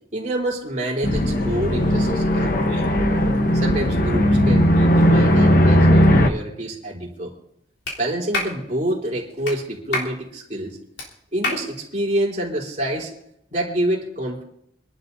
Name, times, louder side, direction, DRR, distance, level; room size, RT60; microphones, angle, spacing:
voice 1, 0.1-2.9 3.5-7.3 8.0-10.8 11.3-13.1 13.5-14.4, right 1 dB, 40° right, -3 dB, 3.5 m, -27 dB
sound 1, 1.0-6.3, equal, 50° left, 1.1 m, -17 dB
Clapping, 7.9-8.0 8.3-8.6 9.4-9.6 9.9-10.1 11.0-11.1 11.4-11.6, left 2 dB, 80° left, 3.6 m, -25 dB
26.5 x 11.5 x 2.7 m, 0.75 s
head